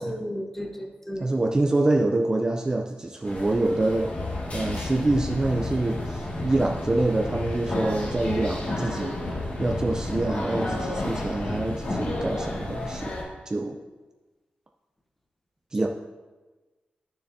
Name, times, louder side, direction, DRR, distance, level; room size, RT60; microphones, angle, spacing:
voice 1, 0.0-1.3 15.7-15.9, equal, 10° left, 3 dB, 0.8 m, -34 dB
voice 2, 1.2-4.1 4.5-9.2 9.6-13.1 13.5-13.8 15.7-15.9, right 2 dB, 20° right, 2 dB, 0.4 m, -26 dB
sound 1, 3.2-13.2, left 1 dB, 45° left, 1.9 m, -31 dB
12.0 x 6.8 x 2.7 m, 1.2 s
wide cardioid pair, 165°, 3 cm